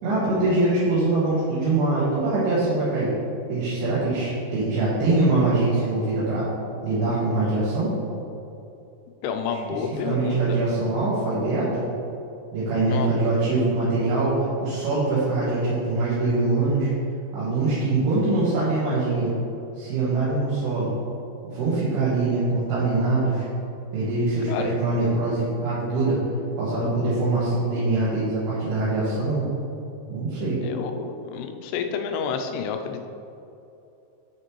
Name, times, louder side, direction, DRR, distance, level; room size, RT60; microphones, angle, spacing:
voice 1, 0.0-3.1 3.5-6.5 6.8-8.0 9.7-11.8 12.5-16.9 17.3-19.3 19.8-20.9 21.4-23.4 23.9-26.2 26.6-29.5 30.1-30.6, right 2 dB, 80° right, -10 dB, 3.4 m, -23 dB
voice 2, 9.2-10.6 12.9-13.2 24.5-24.7 30.6-33.1, left 6 dB, 85° left, 6 dB, 2.6 m, -29 dB
7.4 x 6.7 x 3.0 m, 2.8 s
omnidirectional pair, 4.7 m